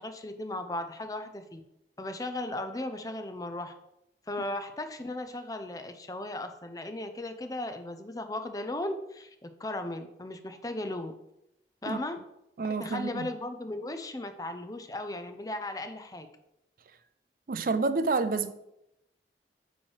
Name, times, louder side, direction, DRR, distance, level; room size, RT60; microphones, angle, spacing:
voice 1, 0.0-1.6 2.0-3.7 4.3-11.1 11.8-12.2 12.8-16.3, left 1 dB, 20° left, 0.5 m, -36 dB
voice 2, 12.6-13.3 17.5-18.5, right 3 dB, 50° right, 0.4 m, -28 dB
8.3 x 3.1 x 6.4 m
head